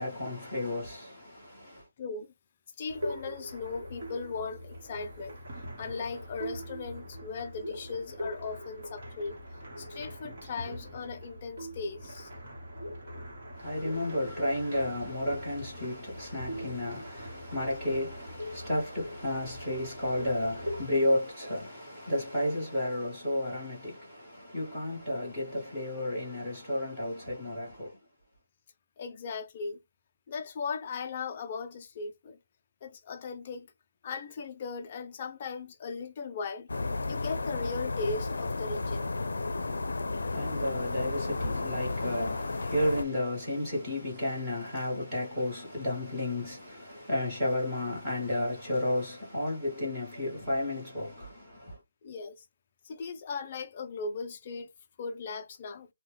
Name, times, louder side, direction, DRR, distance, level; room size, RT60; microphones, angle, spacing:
voice 1, 0.0-1.8 13.6-28.0 40.2-51.8, left 1 dB, 10° right, 1.2 m, -32 dB
voice 2, 2.0-2.3 2.8-5.4 5.8-9.4 9.8-12.3 29.0-29.8 30.3-32.4 32.8-33.7 34.0-36.7 37.1-39.1 52.0-52.4 52.8-54.7 55.0-55.9, left 4 dB, 20° left, 0.3 m, -38 dB
sound 1, 2.9-20.9, equal, 35° right, 1.1 m, -42 dB
sound 2, 36.7-43.0, left 3 dB, 90° left, 0.4 m, -33 dB
2.8 x 2.1 x 3.3 m
hypercardioid pair, 180°, 0 cm